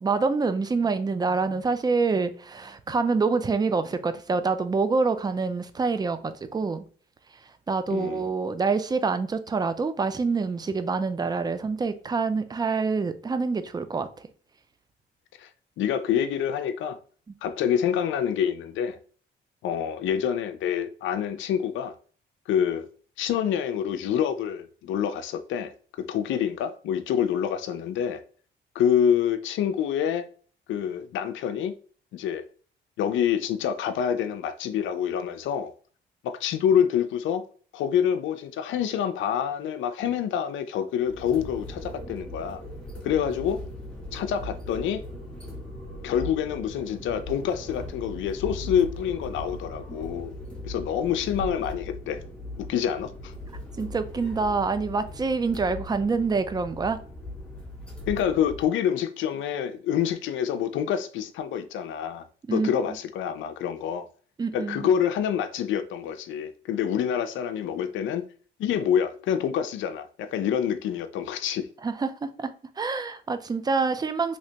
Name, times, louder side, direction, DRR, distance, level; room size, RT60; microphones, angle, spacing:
voice 1, 0.0-6.8 7.7-14.1 53.8-57.0 62.5-62.7 64.4-64.9 71.8-74.4, right 4 dB, 20° right, 0.4 m, -26 dB
voice 2, 7.9-8.2 15.4-15.5 15.8-17.0 17.4-19.0 19.6-21.9 22.5-22.9 23.2-28.2 28.8-30.3 30.7-31.7 32.1-32.5 33.0-35.7 36.2-37.4 37.7-42.6 43.0-43.6 44.1-45.0 46.0-50.3 50.6-52.2 52.6-53.3 58.1-64.1 64.5-68.3 68.6-71.7, left 9 dB, 75° left, 0.4 m, -27 dB
sound 1, 41.0-58.6, left 1 dB, 5° left, 1.0 m, -39 dB
3.2 x 2.8 x 2.8 m
cardioid pair, 90°, 20 cm